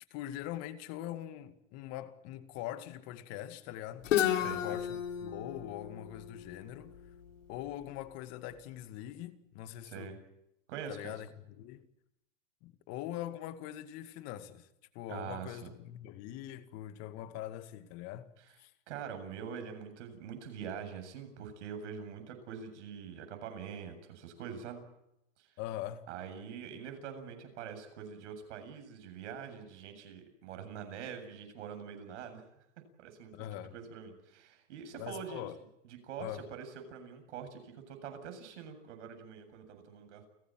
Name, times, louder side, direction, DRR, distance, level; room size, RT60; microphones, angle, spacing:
voice 1, 0.1-4.1 4.4-6.9 7.5-10.1 10.9-11.9 12.6-14.7 14.9-18.3 18.6-18.7 25.6-26.1 33.3-33.7 35.0-35.6 36.2-36.5, left 12 dB, 40° left, 2.2 m, -42 dB
Guitar, 4.0-7.8, left 11 dB, 80° left, 3.4 m, -34 dB
voice 2, 4.4-4.8 9.8-10.1 10.7-11.2 15.1-15.7 18.4-18.6 18.9-24.8 25.4-25.5 26.1-32.4 33.0-35.5 35.8-40.3, right 7 dB, 65° right, 7.7 m, -44 dB
29.5 x 17.0 x 7.7 m
hypercardioid pair, 140°, 38 cm